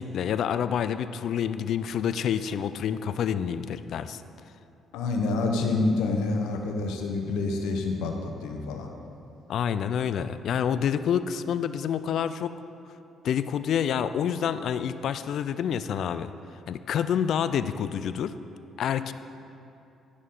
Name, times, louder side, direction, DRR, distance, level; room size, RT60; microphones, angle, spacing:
voice 1, 0.0-4.2 9.5-12.5 13.2-16.3 16.7-18.3 18.8-19.1, left 8 dB, 70° left, 13 dB, 0.3 m, -28 dB
voice 2, 4.9-8.9, left 3 dB, 90° left, 3 dB, 0.9 m, -27 dB
11.0 x 6.3 x 3.8 m, 2.7 s
cardioid pair, 80°, 0 cm